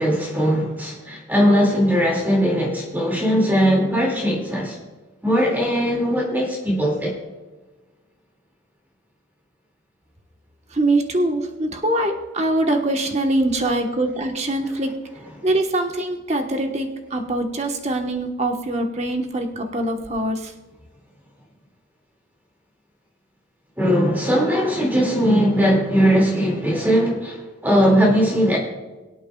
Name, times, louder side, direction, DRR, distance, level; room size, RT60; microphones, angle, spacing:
voice 1, 0.0-4.8 5.2-7.1 23.8-28.6, equal, 10° right, 2.2 m, -19 dB
voice 2, 10.7-14.9 15.4-20.5, right 1 dB, 35° right, 1.2 m, -23 dB
23.0 x 8.5 x 2.3 m
head